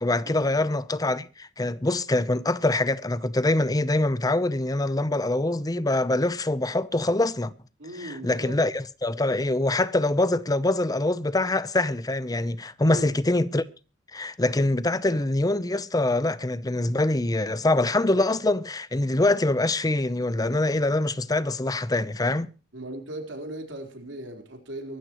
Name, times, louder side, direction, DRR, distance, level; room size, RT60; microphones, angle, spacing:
voice 1, 0.0-7.5 7.9-13.6 14.1-22.5, left 2 dB, 20° left, 0.7 m, -24 dB
voice 2, 7.8-8.6 12.8-13.2 22.7-25.0, right 1 dB, 90° right, 4.1 m, -38 dB
23.5 x 13.0 x 3.1 m
head